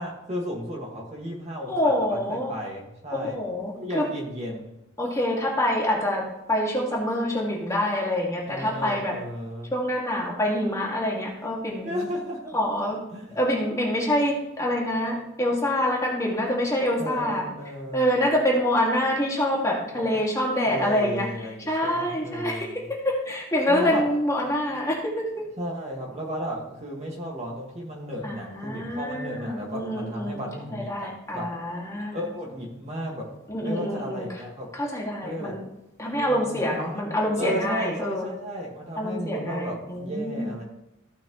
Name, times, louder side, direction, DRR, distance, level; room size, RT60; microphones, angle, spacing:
voice 1, 0.0-3.4 3.7-4.7 8.5-9.7 11.8-12.6 13.1-13.4 17.0-18.2 19.9-20.2 20.7-22.9 23.7-24.1 25.6-31.5 32.1-33.3 33.6-34.7 35.2-35.6 36.1-40.6, equal, 30° right, -2 dB, 1.7 m, -34 dB
voice 2, 1.7-2.5 3.1-4.1 5.0-6.2 6.5-9.1 9.7-12.1 12.5-13.0 13.3-17.4 17.9-21.3 21.7-22.7 23.0-25.3 28.2-30.5 30.7-32.2 33.5-34.3 34.7-35.6 36.0-38.3 39.0-40.5, left 1 dB, 15° left, -3 dB, 1.8 m, -26 dB
15.0 x 5.8 x 3.0 m, 0.88 s
head